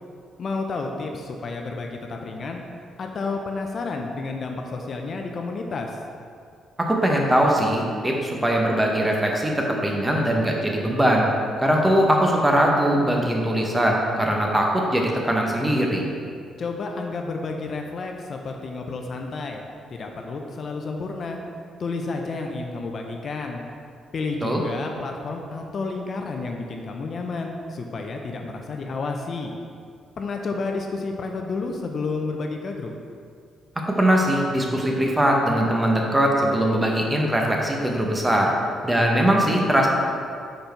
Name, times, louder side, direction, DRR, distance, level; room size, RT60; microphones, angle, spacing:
voice 1, 0.4-2.6 3.0-6.0 16.6-19.6 19.9-21.4 21.8-23.6 24.1-29.5 30.2-32.9, left 3 dB, 50° left, 2 dB, 0.6 m, -30 dB
voice 2, 6.8-11.3 11.6-16.0 24.4-24.6 33.9-38.5 38.8-39.9, equal, 15° right, 0 dB, 1.0 m, -21 dB
5.3 x 4.3 x 4.5 m, 2.3 s
cardioid pair, 90°, 0 cm